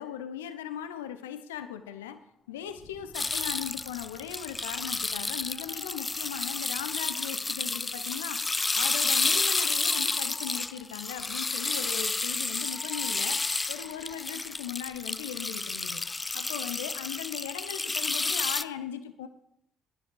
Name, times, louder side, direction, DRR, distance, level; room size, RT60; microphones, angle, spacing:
voice 1, 0.0-2.2 2.5-8.4 8.7-16.0 16.3-19.3, left 9 dB, 80° left, 10 dB, 0.6 m, -38 dB
sound 1, 1.5-2.7 3.1-7.5 8.2-14.9 15.6-18.2, left 6 dB, 50° left, 1.6 m, -55 dB
Fire, 2.5-7.7, right 1 dB, 80° right, 3.7 m, -58 dB
sound 2, 3.1-18.6, left 3 dB, 25° left, 0.4 m, -31 dB
14.5 x 11.0 x 3.9 m, 0.74 s
figure-of-eight pair, 50°, 0 cm